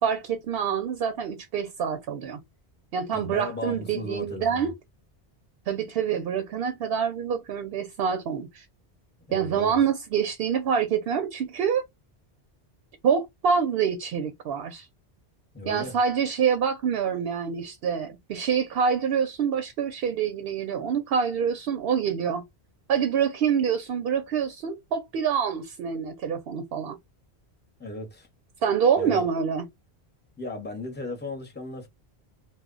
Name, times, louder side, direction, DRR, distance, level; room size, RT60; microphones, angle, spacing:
voice 1, 0.0-2.4 2.9-4.7 5.7-8.6 9.3-11.8 13.0-14.9 15.7-22.4 22.9-27.0 28.6-29.6, right 7 dB, 70° right, 0.7 m, -26 dB
voice 2, 3.1-4.7 9.3-9.8 15.5-16.0 27.8-28.3 29.0-29.3 30.4-31.9, left 2 dB, 10° left, 0.7 m, -36 dB
2.1 x 2.1 x 3.6 m
omnidirectional pair, 1.1 m